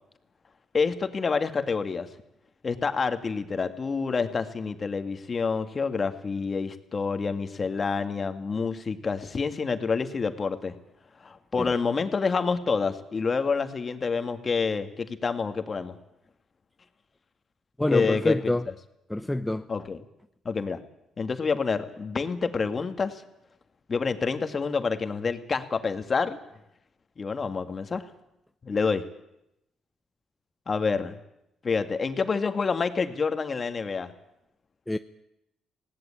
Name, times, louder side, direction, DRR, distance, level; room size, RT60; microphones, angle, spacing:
voice 1, 0.7-2.1 2.6-10.7 11.2-16.0 17.9-18.4 19.7-20.0 20.5-20.8 21.2-23.2 23.9-26.4 27.2-28.0 28.6-29.0 30.7-31.2 31.6-34.1, left 5 dB, 35° left, 2.0 m, -28 dB
voice 2, 17.8-18.7 19.1-19.7 34.9-35.0, left 1 dB, 10° left, 0.7 m, -26 dB
20.0 x 17.5 x 8.9 m
cardioid pair, 90°, 0 cm